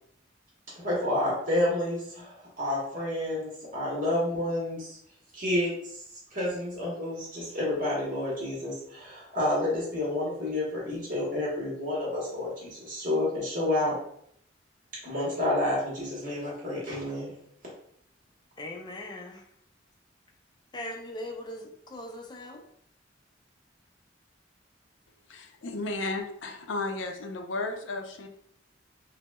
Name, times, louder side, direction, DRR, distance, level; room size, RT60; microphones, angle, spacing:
voice 1, 0.8-5.0 5.3-6.0 6.3-14.0 15.0-17.3, left 1 dB, 45° right, -5 dB, 1.0 m, -29 dB
voice 2, 18.6-19.5 20.7-22.6, left 1 dB, 25° left, 2 dB, 0.4 m, -40 dB
voice 3, 25.3-28.3, left 2 dB, 85° left, 4 dB, 0.5 m, -34 dB
5.7 x 2.1 x 2.2 m, 0.69 s
head